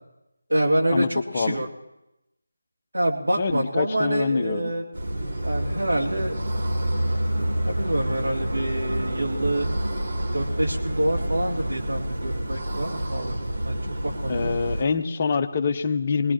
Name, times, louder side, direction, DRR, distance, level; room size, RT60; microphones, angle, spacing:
voice 1, 0.5-1.7 2.9-4.9 5.4-6.4 7.6-9.7 10.3-13.4 13.6-14.6, right 1 dB, 75° right, -1 dB, 2.5 m, -26 dB
voice 2, 3.4-4.7 14.3-16.3, left 5 dB, 30° left, 7 dB, 0.8 m, -25 dB
sound 1, 4.9-14.8, right 1 dB, 45° right, 4.0 m, -28 dB
22.0 x 19.5 x 3.0 m, 0.91 s
figure-of-eight pair, 160°, 0 cm